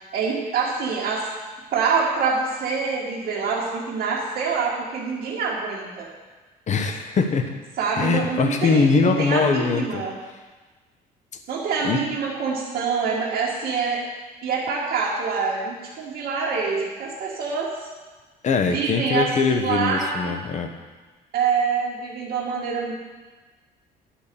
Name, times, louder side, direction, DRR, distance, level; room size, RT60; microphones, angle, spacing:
voice 1, 0.1-1.3 1.7-6.1 7.8-10.2 11.5-14.0 14.4-17.9 18.6-20.3 21.3-22.9, right 5 dB, 60° right, -6 dB, 1.8 m, -25 dB
voice 2, 6.7-7.5 8.0-10.0 11.8-12.0 18.4-20.7, left 5 dB, 45° left, 6 dB, 1.1 m, -22 dB
10.5 x 5.2 x 6.9 m, 1.3 s
cardioid pair, 110°, 17 cm